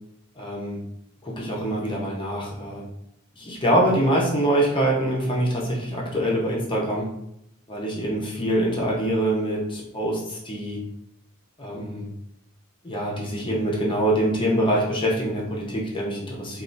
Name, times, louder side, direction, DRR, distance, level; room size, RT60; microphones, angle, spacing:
voice 1, 0.4-0.8 1.2-2.8 3.4-7.1 7.7-10.8 11.6-12.0 12.8-16.6, right 1 dB, 20° left, -4 dB, 0.6 m, -24 dB
3.2 x 2.3 x 2.6 m, 0.78 s
head